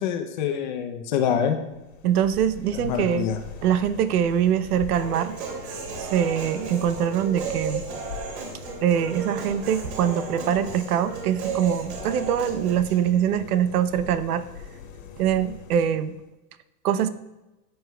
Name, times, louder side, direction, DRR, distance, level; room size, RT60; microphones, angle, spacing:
voice 1, 0.0-1.6 2.7-3.4, left 8 dB, 30° left, 6 dB, 0.6 m, -26 dB
sound 1, 1.7-16.3, left 6 dB, 65° left, 1.9 m, -42 dB
voice 2, 2.0-3.3 3.6-5.4 6.0-7.8 8.8-14.4 15.2-16.1 16.8-17.1, right 9 dB, 80° right, 13 dB, 0.8 m, -23 dB
Human voice, 4.9-12.9, right 5 dB, 50° right, 2.4 m, -34 dB
14.0 x 7.9 x 2.2 m, 1.0 s
supercardioid pair, 170°, 44 cm